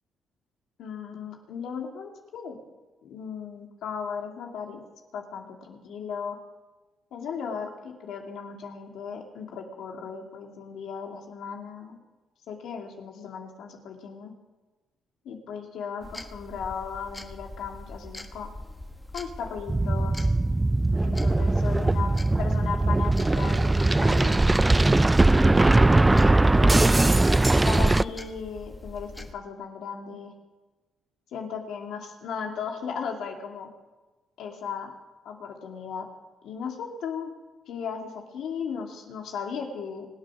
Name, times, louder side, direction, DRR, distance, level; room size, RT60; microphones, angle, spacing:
voice 1, 0.8-2.6 3.0-4.8 5.1-6.4 7.1-12.0 12.5-14.3 15.2-18.5 19.1-20.3 21.0-24.4 27.4-30.3 31.3-33.7 34.4-34.9 35.2-36.1 36.4-37.3 37.7-40.1, left 6 dB, 80° left, 2 dB, 2.8 m, -36 dB
sound 1, 16.0-29.3, left 1 dB, 10° left, 1.4 m, -43 dB
sound 2, 19.7-28.0, right 2 dB, 15° right, 0.4 m, -20 dB
25.5 x 8.7 x 6.3 m, 1.2 s
cardioid pair, 90°, 0 cm